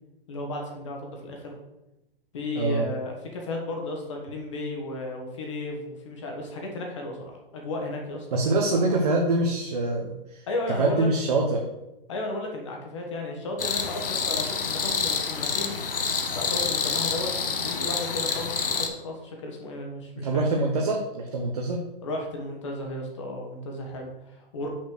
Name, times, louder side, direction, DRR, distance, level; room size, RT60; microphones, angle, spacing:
voice 1, 0.3-1.5 2.3-9.0 10.5-11.1 12.1-15.7 16.3-20.4 22.0-24.7, left 2 dB, 30° left, 1 dB, 1.3 m, -34 dB
voice 2, 2.5-2.9 8.3-10.4 10.8-11.6 20.2-21.8, right 2 dB, 40° right, 0 dB, 0.9 m, -24 dB
sound 1, 13.6-18.9, left 5 dB, 65° left, 1.2 m, -28 dB
6.1 x 4.2 x 6.2 m, 0.94 s
hypercardioid pair, 175°, 29 cm